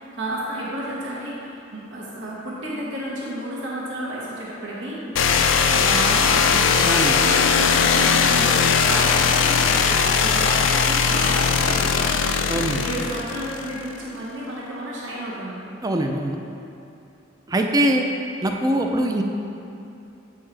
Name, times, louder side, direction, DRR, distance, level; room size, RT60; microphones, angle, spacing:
voice 1, 0.0-6.7 7.2-12.3 12.8-15.6, right 1 dB, 70° right, -6 dB, 1.2 m, -31 dB
sound 1, 5.1-13.9, left 6 dB, 75° left, 0.4 m, -19 dB
voice 2, 6.9-7.2 12.5-12.8 15.8-16.4 17.5-18.0 18.4-19.2, right 1 dB, 20° right, 3 dB, 0.4 m, -22 dB
7.9 x 5.4 x 3.3 m, 2.8 s
head